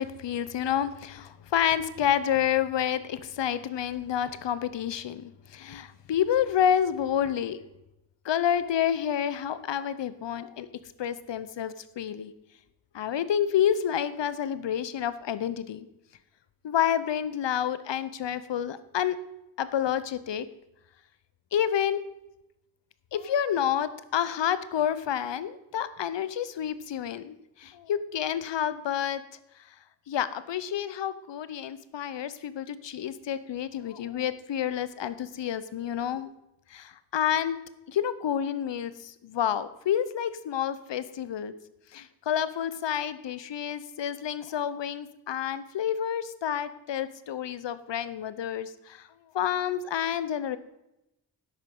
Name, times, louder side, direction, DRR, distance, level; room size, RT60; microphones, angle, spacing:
voice 1, 0.0-7.6 8.2-10.7 11.0-12.3 12.9-15.9 16.6-19.2 19.6-20.5 21.5-22.0 23.1-29.2 30.1-36.3 36.7-37.6 37.9-41.5 41.9-49.1 49.3-50.6, left 9 dB, 75° left, 14 dB, 0.9 m, -29 dB
10.5 x 8.1 x 5.4 m, 0.88 s
cardioid pair, 60°, 44 cm